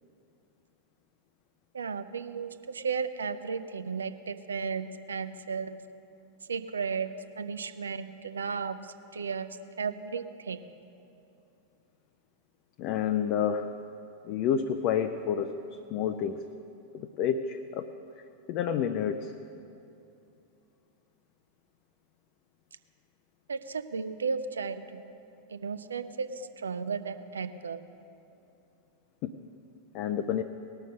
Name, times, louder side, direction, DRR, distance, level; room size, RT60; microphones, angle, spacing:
voice 1, 1.7-5.8 6.5-7.1 7.4-8.8 9.1-10.6 23.5-24.8 25.5-27.8, right 5 dB, 70° right, 11 dB, 0.5 m, -34 dB
voice 2, 12.8-13.7 14.3-15.5 15.9-16.4 16.9-17.9 18.5-19.3 29.2-29.3 29.9-30.4, left 8 dB, 40° left, 7 dB, 0.5 m, -29 dB
18.5 x 6.5 x 6.4 m, 2.8 s
figure-of-eight pair, 90°, 0 cm